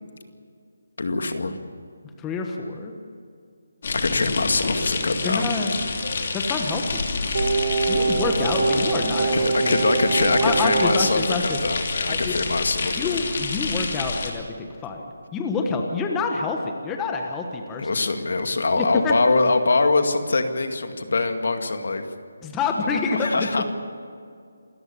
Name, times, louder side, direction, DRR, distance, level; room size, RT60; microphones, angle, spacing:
voice 1, 1.0-1.6 3.9-5.5 9.4-13.2 17.8-22.1 23.1-23.6, left 3 dB, 65° left, 7 dB, 2.2 m, -23 dB
voice 2, 2.2-2.9 5.2-5.7 6.3-7.0 7.9-9.8 10.4-11.6 12.1-12.4 13.0-15.0 15.3-17.9 18.7-19.1 22.4-23.6, left 4 dB, 10° left, 3 dB, 1.2 m, -27 dB
sound 1, 3.8-14.3, left 4 dB, 45° left, 3.0 m, -28 dB
Singing, 7.3-11.2 11.5-11.6, right 4 dB, 55° right, 1.9 m, -24 dB
27.0 x 14.5 x 7.0 m, 2.3 s
hypercardioid pair, 170°, 0 cm